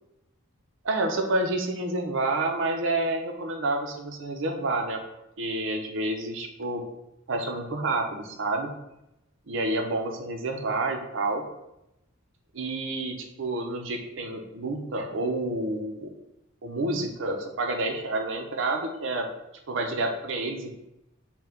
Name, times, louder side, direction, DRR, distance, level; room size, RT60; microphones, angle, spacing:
voice 1, 0.8-5.0 5.4-6.8 7.3-8.7 9.5-11.4 12.5-16.1 16.6-19.3 19.7-20.7, right 2 dB, 65° right, 4 dB, 0.6 m, -29 dB
4.5 x 2.2 x 3.8 m, 0.88 s
head